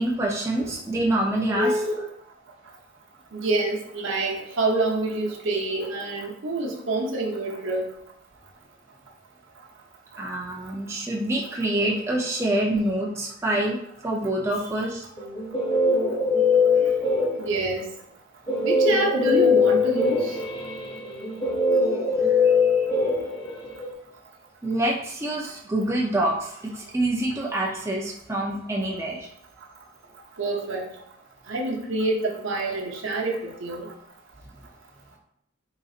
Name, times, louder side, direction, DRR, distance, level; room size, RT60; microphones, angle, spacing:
voice 1, 0.0-1.7 10.2-13.8 14.0-15.1 18.6-18.7 22.4-23.1 24.6-29.3, right 1 dB, 15° right, -3 dB, 0.5 m, -26 dB
voice 2, 1.5-2.1 3.3-7.9 16.8-16.9 17.4-17.9 18.6-20.4 30.4-30.9 31.5-33.9, right 2 dB, 75° right, 0 dB, 0.8 m, -26 dB
Guitar, 15.2-17.7 18.5-23.9, left 3 dB, 25° left, 1.2 m, -22 dB
4.0 x 3.9 x 2.4 m, 0.76 s
head